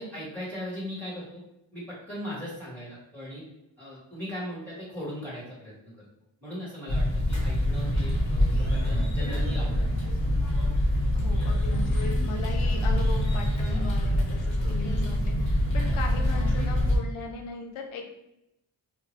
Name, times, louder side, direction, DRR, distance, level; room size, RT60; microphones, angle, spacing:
voice 1, 0.0-1.4 1.7-3.4 3.8-6.1 6.4-10.1, equal, 5° left, -10 dB, 1.5 m, -38 dB
sound 1, 6.9-17.0, left 1 dB, 35° left, 1.2 m, -25 dB
voice 2, 11.1-18.1, left 3 dB, 85° left, 3 dB, 0.6 m, -38 dB
2.8 x 2.2 x 3.1 m, 0.85 s
cardioid pair, 40°, 49 cm